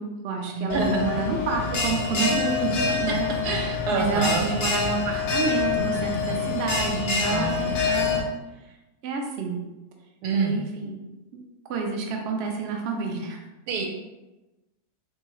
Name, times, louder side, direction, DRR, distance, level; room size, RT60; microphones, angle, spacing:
voice 1, 0.0-3.3 3.9-8.2 9.0-9.6 10.3-11.0 11.3-11.4 11.7-13.4, right 4 dB, 60° right, 1 dB, 0.7 m, -29 dB
voice 2, 0.5-1.1 2.6-3.2 3.4-4.5 7.2-8.3 10.2-10.6 13.7-13.9, right 4 dB, 85° right, 1 dB, 1.2 m, -28 dB
Bell, 0.7-8.2, left 4 dB, 60° left, 0.7 m, -26 dB
3.6 x 2.8 x 3.0 m, 1.1 s
omnidirectional pair, 1.7 m